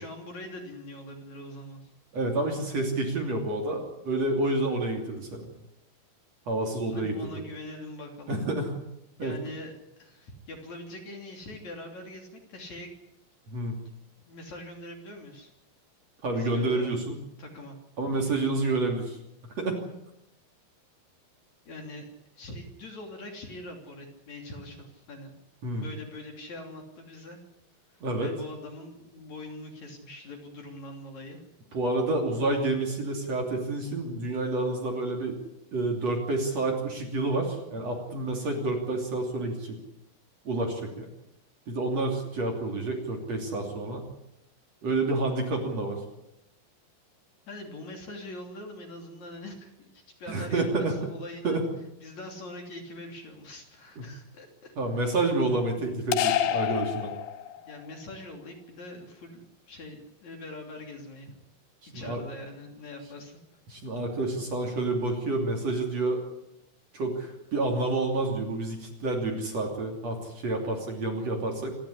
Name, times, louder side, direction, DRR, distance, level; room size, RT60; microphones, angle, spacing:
voice 1, 0.0-1.9 6.9-8.4 9.2-9.7 10.0-12.9 14.3-15.5 16.3-17.0 17.4-17.8 21.7-22.1 22.4-25.3 25.8-27.4 28.2-31.4 47.5-51.6 52.0-54.7 55.1-55.3 57.6-61.3 61.9-63.4, left 1 dB, 45° left, 2 dB, 4.2 m, -43 dB
voice 2, 2.1-5.5 6.5-7.3 8.3-8.7 9.2-9.3 13.5-13.8 16.2-17.2 18.0-19.2 19.6-19.8 25.6-25.9 28.0-28.3 31.7-35.4 35.7-39.8 40.5-41.1 41.7-44.1 44.8-46.0 50.3-51.0 51.4-51.7 54.8-57.1 61.8-62.2 63.7-66.2 66.9-71.8, right 2 dB, 40° right, 2 dB, 3.8 m, -29 dB
sound 1, 56.1-57.8, left 11 dB, 85° left, 3.2 m, -27 dB
27.5 x 12.0 x 10.0 m, 0.85 s
omnidirectional pair, 4.7 m